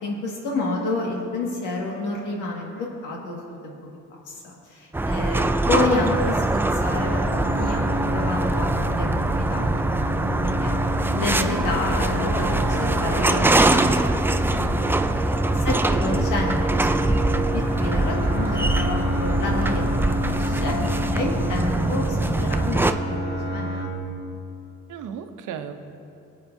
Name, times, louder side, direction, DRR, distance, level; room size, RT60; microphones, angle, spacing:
voice 1, 0.0-3.4 3.6-3.7 4.3-10.7 11.1-13.9 14.3-14.9 15.2-16.9 17.3-23.7, left 2 dB, 90° left, -1 dB, 2.0 m, -29 dB
sound 1, 4.9-22.9, right 2 dB, 10° right, 0.3 m, -23 dB
sound 2, 6.9-23.8, equal, 20° left, 2.7 m, -30 dB
voice 2, 15.9-16.3 24.9-25.7, right 8 dB, 80° right, 7 dB, 0.8 m, -37 dB
21.5 x 8.4 x 2.7 m, 2.6 s
cardioid pair, 90°, 30 cm